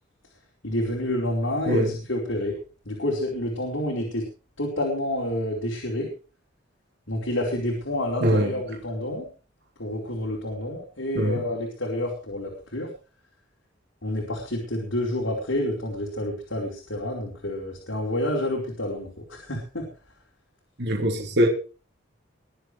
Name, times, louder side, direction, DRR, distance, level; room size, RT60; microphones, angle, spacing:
voice 1, 0.6-2.6 2.8-4.3 4.6-6.1 7.1-9.3 9.8-12.9 14.0-19.9, left 1 dB, 75° left, 4.7 m, -28 dB
voice 2, 20.8-21.5, equal, 60° right, 3.3 m, -22 dB
22.5 x 7.6 x 4.8 m
head